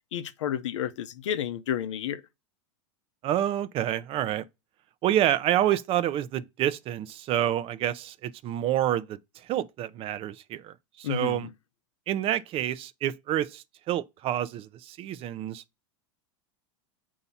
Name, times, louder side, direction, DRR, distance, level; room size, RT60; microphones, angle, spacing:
voice 1, 0.1-2.2 11.0-11.5, left 10 dB, 80° left, 0.6 m, -31 dB
voice 2, 3.2-4.5 5.0-11.5 12.1-15.6, right 12 dB, 40° right, 0.5 m, -28 dB
6.9 x 2.8 x 5.5 m
hypercardioid pair, 110°, 15 cm